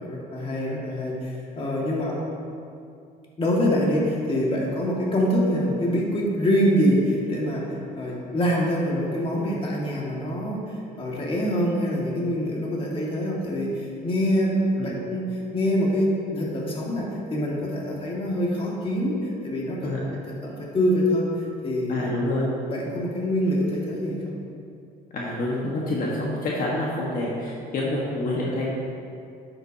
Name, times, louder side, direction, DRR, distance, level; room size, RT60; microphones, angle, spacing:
voice 1, 0.0-2.2 3.4-15.3 15.5-20.0 20.3-22.1 22.7-24.3, equal, 30° left, -3 dB, 1.9 m, -25 dB
voice 2, 19.8-20.1 21.9-22.5 25.1-28.7, left 1 dB, 55° left, -4 dB, 1.4 m, -27 dB
10.0 x 7.7 x 2.8 m, 2.4 s
cardioid pair, 110°, 17 cm